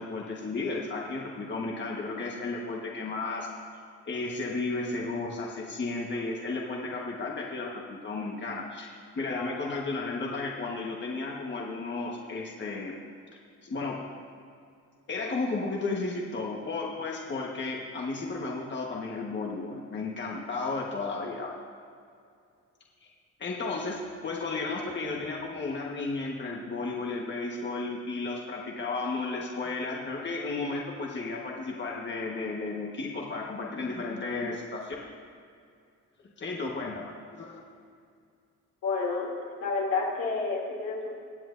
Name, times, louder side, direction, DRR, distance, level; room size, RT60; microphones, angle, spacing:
voice 1, 0.0-3.5 4.1-8.9 9.1-12.9 13.6-14.0 15.1-21.5 23.0-23.1 23.4-35.0 36.2-37.6, left 3 dB, 35° left, -2 dB, 1.4 m, -33 dB
voice 2, 38.8-39.3 39.6-41.1, left 4 dB, 80° left, -4 dB, 2.8 m, -29 dB
22.0 x 7.8 x 2.6 m, 2.3 s
cardioid pair, 90°, 30 cm